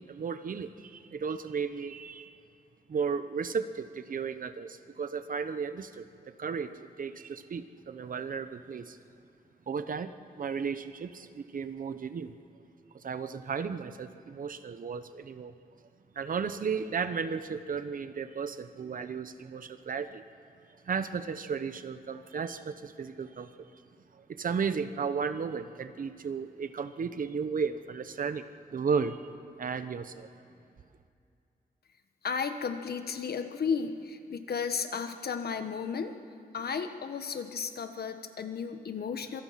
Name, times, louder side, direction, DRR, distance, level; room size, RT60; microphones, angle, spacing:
voice 1, 0.0-2.3 2.9-6.1 6.4-9.0 9.7-12.4 12.9-15.5 16.1-20.2 20.8-23.5 24.1-29.2 29.6-30.3, right 6 dB, 60° right, 11 dB, 0.9 m, -34 dB
voice 2, 32.2-36.2 36.5-39.4, left 6 dB, 90° left, 8 dB, 1.3 m, -34 dB
25.5 x 24.5 x 5.8 m, 2.5 s
wide cardioid pair, 180°, 16 cm